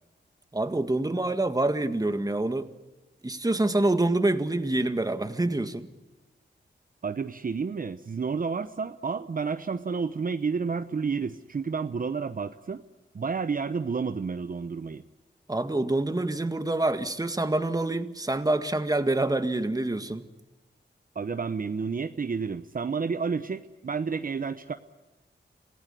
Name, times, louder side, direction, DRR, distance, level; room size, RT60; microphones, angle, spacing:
voice 1, 0.5-2.7 3.2-5.9 15.5-20.2, right 2 dB, 20° right, 9 dB, 1.8 m, -26 dB
voice 2, 7.0-12.8 13.1-15.0 21.1-24.7, right 5 dB, 50° right, 10 dB, 0.9 m, -30 dB
27.0 x 17.0 x 9.9 m, 1.1 s
cardioid pair, 70°, 19 cm